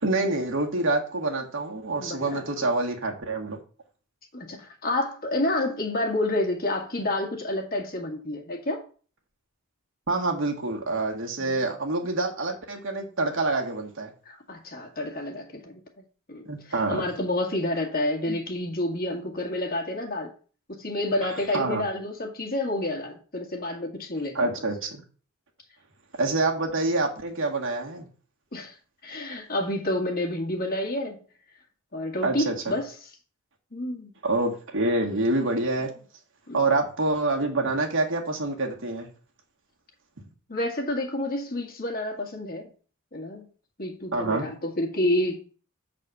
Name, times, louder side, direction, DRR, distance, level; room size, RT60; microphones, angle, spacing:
voice 1, 0.0-3.6 10.1-14.1 16.5-17.1 18.3-18.4 21.2-21.8 24.3-25.0 26.2-28.1 32.2-32.8 34.2-35.9 36.5-39.1 44.1-44.5, right 2 dB, 60° right, 1.7 m, -26 dB
voice 2, 2.0-2.7 4.3-8.8 11.4-11.6 14.3-15.8 16.3-16.4 16.9-20.3 20.7-24.5 28.5-28.7 29.0-31.2 31.9-33.1 33.7-34.1 36.5-36.6 40.5-42.7 43.1-43.5 43.8-45.4, left 1 dB, 45° left, 1.9 m, -29 dB
7.6 x 4.3 x 6.7 m
head